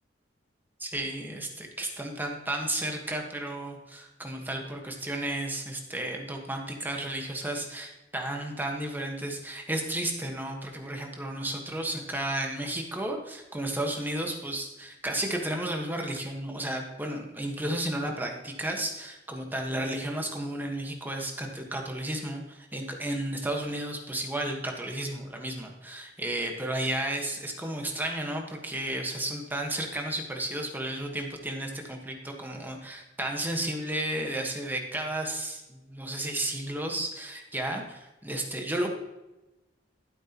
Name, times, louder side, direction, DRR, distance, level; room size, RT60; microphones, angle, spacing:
voice 1, 0.8-38.9, right 1 dB, 10° right, 2 dB, 1.4 m, -33 dB
13.0 x 7.9 x 3.0 m, 1.0 s
head